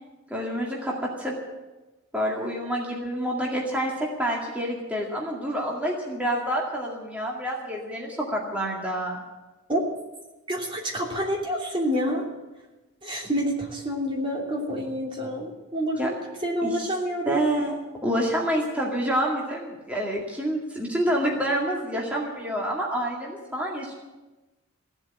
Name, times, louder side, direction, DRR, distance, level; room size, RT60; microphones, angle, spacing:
voice 1, 0.3-1.3 2.1-9.2 16.0-16.1 16.6-16.9 17.3-17.7 18.0-23.9, right 1 dB, 5° right, -3 dB, 2.1 m, -28 dB
voice 2, 10.5-12.2 13.0-16.1 16.4-17.4, equal, 25° right, -1 dB, 2.9 m, -28 dB
16.0 x 7.9 x 9.6 m, 1.1 s
head